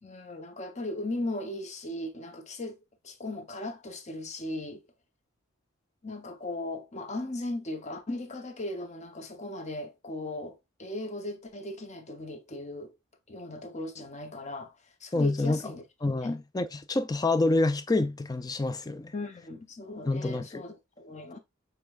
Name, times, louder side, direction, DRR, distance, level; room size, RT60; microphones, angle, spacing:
voice 1, 0.0-4.8 6.0-12.9 13.3-14.7 15.0-15.8 16.2-16.4 19.1-21.4, left 1 dB, 35° left, 0.8 m, -37 dB
voice 2, 15.1-15.6 16.0-19.1 20.1-20.6, left 2 dB, 20° left, 0.4 m, -27 dB
6.7 x 3.2 x 2.4 m
head